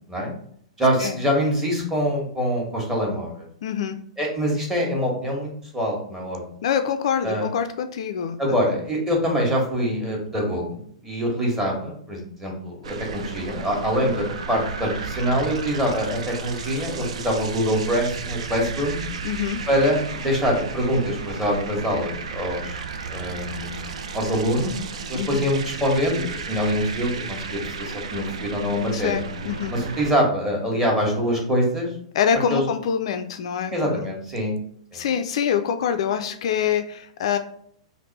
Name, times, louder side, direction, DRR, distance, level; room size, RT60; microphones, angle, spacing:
voice 1, 0.8-3.4 4.2-6.4 7.2-7.5 8.4-10.8 11.0-19.0 19.7-22.8 23.1-23.9 24.1-24.7 25.1-29.2 29.7-31.9 32.5-32.6 33.7-34.5 34.9-35.0, equal, 10° right, -2 dB, 1.4 m, -24 dB
voice 2, 3.6-4.0 6.6-8.4 8.7-8.8 19.2-19.6 25.1-25.5 28.9-29.7 32.1-34.1 34.9-37.4, left 8 dB, 60° left, 8 dB, 0.3 m, -25 dB
sound 1, 12.8-30.1, right 5 dB, 65° right, 0.5 m, -34 dB
3.4 x 2.6 x 4.1 m, 0.63 s
figure-of-eight pair, 110°, 4 cm